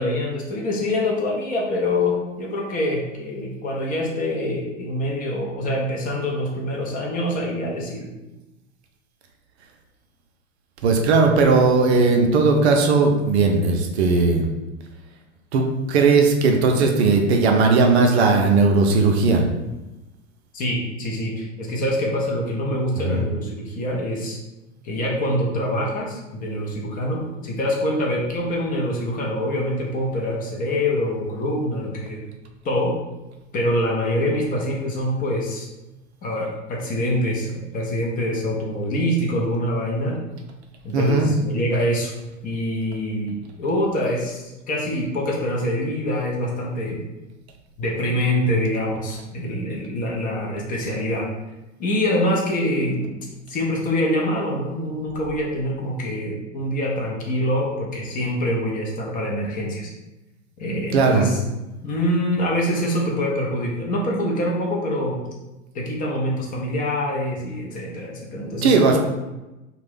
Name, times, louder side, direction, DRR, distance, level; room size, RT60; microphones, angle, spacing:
voice 1, 0.0-8.1 20.5-24.4 24.8-32.2 32.6-32.9 33.5-35.7 36.2-40.2 40.8-42.1 42.4-47.0 47.8-51.3 51.8-53.1 53.5-59.9 60.6-61.4 61.8-65.2 65.7-69.0, left 1 dB, 20° left, -2 dB, 0.5 m, -25 dB
voice 2, 10.8-14.5 15.5-19.5 23.0-23.2 40.9-41.3 60.9-61.3 68.6-69.0, right 4 dB, 60° right, 3 dB, 0.5 m, -17 dB
2.5 x 2.2 x 3.3 m, 1.0 s
figure-of-eight pair, 95°, 38 cm